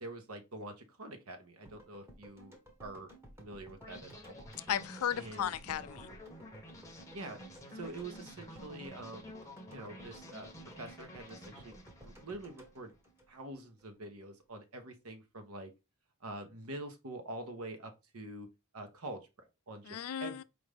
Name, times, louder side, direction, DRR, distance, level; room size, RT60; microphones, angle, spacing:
voice 1, 0.0-3.1 3.4-4.3 5.2-5.5 7.1-7.4 7.7-9.4 9.7-12.9 13.3-15.7 16.2-18.5 18.7-20.4, right 2 dB, 80° right, 1.0 m, -46 dB
sound 1, 1.7-13.8 14.1-14.2, right 1 dB, 10° right, 1.0 m, -56 dB
sound 2, 3.8-12.9, left 1 dB, 15° left, 0.8 m, -51 dB
voice 2, 4.7-6.1 19.8-20.4, left 9 dB, 80° left, 0.4 m, -35 dB
4.9 x 2.6 x 3.3 m
head